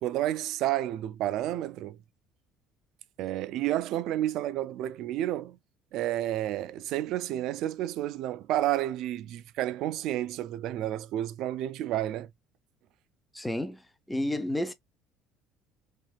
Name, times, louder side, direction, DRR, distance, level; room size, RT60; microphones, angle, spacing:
voice 1, 0.0-2.0 3.2-5.6 5.9-12.3, right 13 dB, 65° right, 0.3 m, -30 dB
voice 2, 13.3-13.8 14.1-14.7, left 1 dB, 5° left, 0.5 m, -30 dB
3.4 x 2.6 x 2.3 m
cardioid pair, 130°, 0 cm